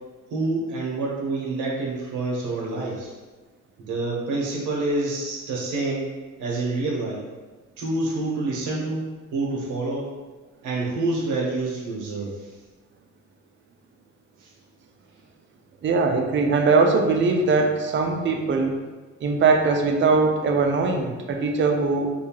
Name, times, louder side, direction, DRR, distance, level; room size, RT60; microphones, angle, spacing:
voice 1, 0.3-3.1 3.8-6.1 6.4-7.2 7.8-9.0 9.3-10.0 10.6-12.5 14.4-14.5, right 2 dB, 80° right, -3 dB, 0.8 m, -27 dB
voice 2, 15.8-18.8 19.2-22.1, right 4 dB, 40° right, 3 dB, 0.4 m, -21 dB
2.7 x 2.2 x 2.8 m, 1.3 s
cardioid pair, 90°, 30 cm